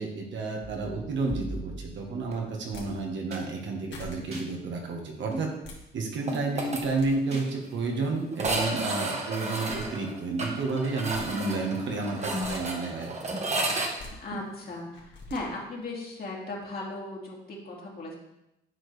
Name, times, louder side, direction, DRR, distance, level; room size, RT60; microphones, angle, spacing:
voice 1, 0.0-5.5 5.9-13.1, right 3 dB, 70° right, 1 dB, 1.6 m, -31 dB
sound 1, 0.6-2.3 3.3-3.4 4.3-4.5 5.3-5.5 6.3-6.5 7.3-7.5 8.3-8.5 9.3-9.4 10.3-10.6 11.3-11.7 12.3-12.7 13.3-13.4 14.3-14.4 15.3-15.4, right 1 dB, 50° right, 2.7 m, -37 dB
sound 2, 2.6-2.9 3.6-3.7 3.9-4.2 5.4-5.8 6.5-7.1 8.1-8.2 8.4-8.6 9.4-9.9 10.9-11.3 12.1-12.6 13.8-14.1 14.9-15.4, left 3 dB, 65° left, 2.0 m, -44 dB
sound 3, 6.3-6.8 7.1-7.2 7.5-7.6 8.3-13.9, right 2 dB, 35° right, 1.5 m, -32 dB
voice 2, 14.0-14.8 15.3-18.1, left 2 dB, 50° left, -3 dB, 2.4 m, -37 dB
10.5 x 4.7 x 3.4 m, 0.89 s
cardioid pair, 90°, 20 cm